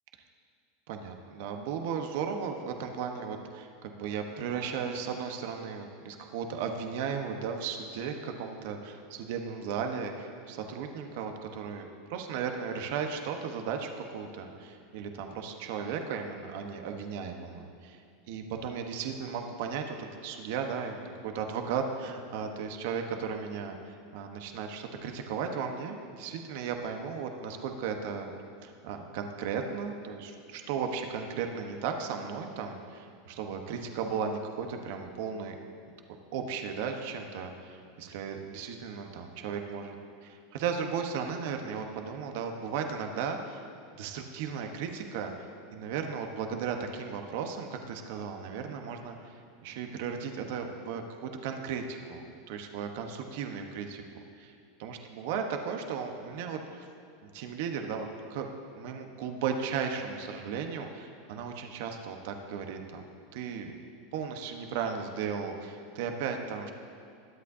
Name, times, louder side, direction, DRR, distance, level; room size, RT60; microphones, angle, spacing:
voice 1, 0.9-23.7 24.1-28.3 28.6-35.5 36.3-39.9 40.2-43.6 43.9-45.3 45.7-49.3 49.6-52.2 52.5-56.9 57.2-58.5 58.8-63.1 63.3-63.7 64.1-66.7, right 6 dB, 65° right, 4 dB, 1.1 m, -35 dB
21.0 x 8.5 x 2.8 m, 2.4 s
hypercardioid pair, 110°, 0 cm